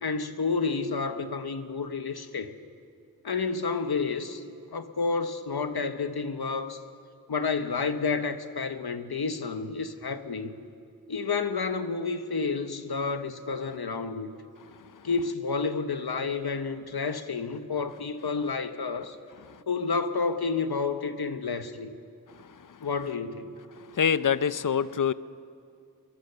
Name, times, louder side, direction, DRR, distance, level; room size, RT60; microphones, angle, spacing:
voice 1, 0.0-2.6 3.2-4.4 4.7-6.8 7.3-10.5 11.1-14.3 15.0-19.2 19.7-21.9 22.8-23.5, left 4 dB, 75° left, 1.2 m, -30 dB
voice 2, 24.0-25.1, left 7 dB, 55° left, 0.6 m, -24 dB
23.0 x 22.0 x 6.9 m
wide cardioid pair, 70°, 38 cm